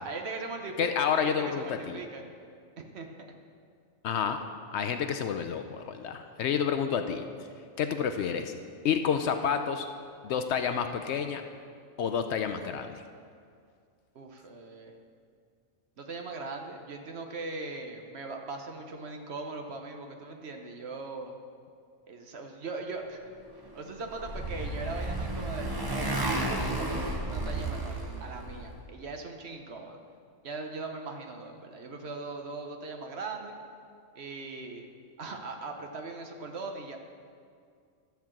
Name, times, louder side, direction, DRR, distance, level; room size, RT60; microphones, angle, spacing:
voice 1, 0.0-2.3 2.8-3.3 14.1-14.9 16.0-21.3 22.1-23.2 23.7-30.0 30.4-33.6 34.1-34.9 35.2-37.0, right 3 dB, 60° right, 4 dB, 1.1 m, -40 dB
voice 2, 0.8-2.0 4.0-4.4 4.7-7.2 7.8-8.5 8.8-9.9 10.2-11.4 12.0-13.0, left 7 dB, 65° left, 7 dB, 0.8 m, -29 dB
Motorcycle, 23.7-28.7, right 1 dB, 20° right, 0.8 m, -32 dB
12.5 x 4.6 x 7.3 m, 2.3 s
omnidirectional pair, 1.3 m